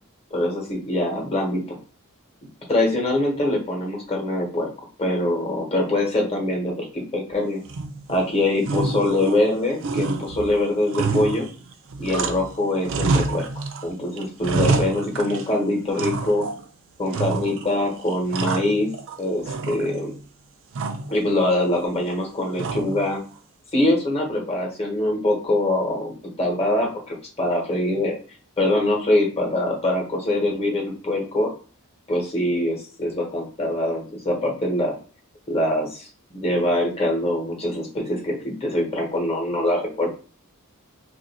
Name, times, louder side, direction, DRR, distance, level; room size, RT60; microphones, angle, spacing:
voice 1, 0.3-1.8 2.7-4.7 5.0-7.6 8.1-11.5 12.0-13.5 13.8-16.4 17.0-18.9 19.2-20.1 21.1-23.2 23.7-28.1 28.6-31.5 32.1-34.9 35.5-36.1 36.3-40.1, left 1 dB, 25° left, 0 dB, 1.1 m, -23 dB
sound 1, 7.7-8.2 8.6-9.5 9.8-12.6 12.8-13.8 14.2-15.5 16.0-16.6 17.1-17.8 18.1-19.2 19.5-20.2 20.7-21.2 22.6-23.1, right 3 dB, 60° right, 0.4 m, -27 dB
2.8 x 2.6 x 4.1 m, 0.38 s
head